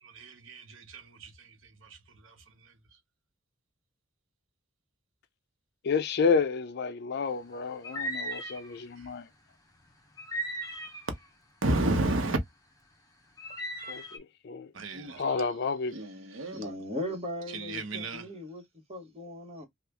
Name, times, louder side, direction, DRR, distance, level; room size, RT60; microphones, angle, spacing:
voice 1, 0.0-2.4 2.6-2.7 9.0-9.1 11.6-12.4 14.7-15.6 15.9-16.7 17.5-18.3, right 2 dB, 75° right, 0.8 m, -33 dB
voice 2, 5.8-9.3 13.9-14.7 15.2-15.9, left 5 dB, 55° left, 0.4 m, -30 dB
sound 1, 7.8-8.8 10.2-11.2 13.4-14.2, right 1 dB, 20° left, 0.7 m, -37 dB
voice 3, 16.5-19.6, left 1 dB, 30° right, 1.3 m, -38 dB
2.9 x 2.3 x 3.4 m
head